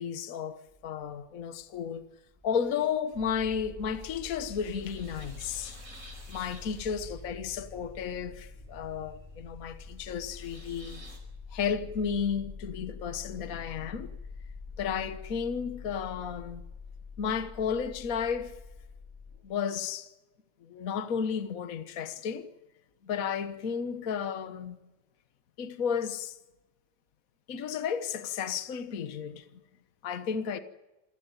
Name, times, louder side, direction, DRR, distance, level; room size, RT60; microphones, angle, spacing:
voice 1, 0.0-2.0 2.4-5.8 6.3-11.0 11.5-14.2 14.8-16.6 17.2-18.6 19.4-20.1 20.6-22.5 23.0-24.8 25.6-26.4 27.5-29.5 30.0-30.6, left 7 dB, 55° left, 1.6 m, -33 dB
sound 1, 0.7-19.4, left 4 dB, 15° left, 6.4 m, -46 dB
sound 2, 3.8-11.2, right 1 dB, 50° right, 5.5 m, -54 dB
27.5 x 16.0 x 9.1 m
omnidirectional pair, 1.9 m